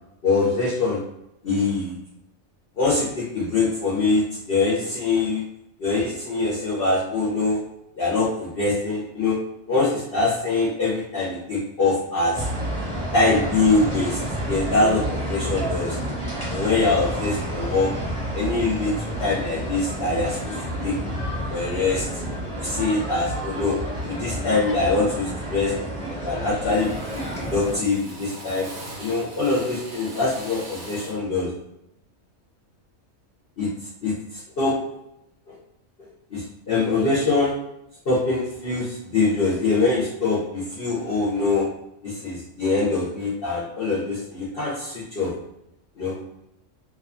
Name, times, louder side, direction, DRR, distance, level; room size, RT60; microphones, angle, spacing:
voice 1, 0.2-1.0 1.4-1.9 2.8-5.4 5.8-7.6 8.0-9.4 9.7-12.5 13.1-14.2 14.5-16.0 16.5-17.9 18.3-20.6 20.8-21.0 21.5-22.2 22.6-25.7 26.1-26.9 27.1-28.7 29.0-31.5 33.6-33.7 34.0-34.7 35.5-35.6 36.3-37.5 38.1-41.7 42.0-45.3 46.0-46.1, left 3 dB, 55° left, -6 dB, 0.7 m, -23 dB
sound 1, 12.3-27.8, right 1 dB, 5° left, 0.8 m, -30 dB
Drill, 25.0-25.5 25.8-26.3 26.7-31.3, right 1 dB, 85° right, 1.0 m, -41 dB
2.6 x 2.2 x 2.5 m, 0.82 s
omnidirectional pair, 1.4 m